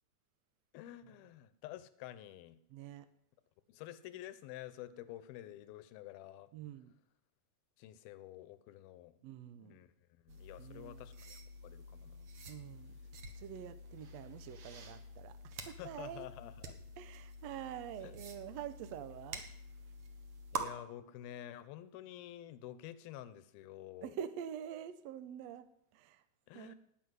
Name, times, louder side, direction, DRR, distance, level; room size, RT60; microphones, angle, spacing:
voice 1, 0.7-2.6 3.7-6.5 7.8-9.2 9.6-12.3 15.6-16.7 18.0-18.2 20.5-24.2 26.5-26.8, left 13 dB, 80° left, 13 dB, 2.7 m, -50 dB
voice 2, 2.7-3.1 6.5-7.0 9.2-9.8 10.6-11.0 12.5-12.9 13.3-16.3 17.0-19.4 24.0-25.7 25.9-26.2 26.5-26.7, right 10 dB, 85° right, 12 dB, 1.5 m, -46 dB
sound 1, 10.3-20.6, right 2 dB, 55° right, 1.6 m, -48 dB
18.0 x 6.2 x 9.6 m, 0.79 s
omnidirectional pair, 4.3 m